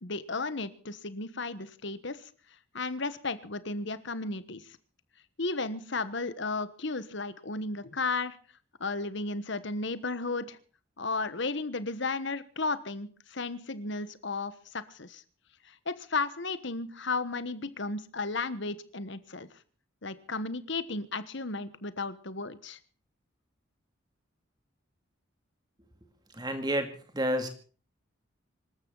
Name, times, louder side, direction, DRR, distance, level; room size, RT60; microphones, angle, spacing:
voice 1, 0.0-2.2 2.7-4.7 5.4-8.4 8.8-10.6 11.0-15.2 15.7-19.5 20.0-22.8, left 3 dB, 55° left, 14 dB, 1.3 m, -34 dB
voice 2, 26.3-27.5, equal, 20° right, 7 dB, 2.5 m, -30 dB
25.5 x 13.5 x 4.0 m, 0.39 s
head